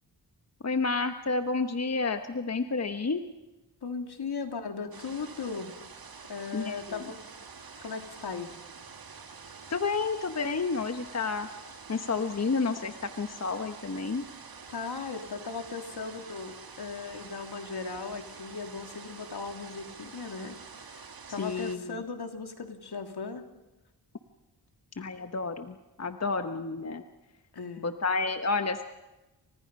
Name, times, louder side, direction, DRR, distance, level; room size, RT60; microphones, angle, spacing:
voice 1, 0.6-3.2 6.5-7.0 9.7-11.5 11.9-14.3 21.4-22.0 25.0-27.0 27.8-28.8, left 4 dB, 40° left, 8 dB, 1.2 m, -30 dB
voice 2, 3.8-5.8 6.3-7.2 7.8-8.5 14.7-23.4 27.5-27.9, left 5 dB, 65° left, 4 dB, 2.9 m, -38 dB
sound 1, 4.9-21.8, right 5 dB, 55° right, 2.1 m, -47 dB
29.5 x 25.5 x 5.4 m, 1.1 s
wide cardioid pair, 85°, 41 cm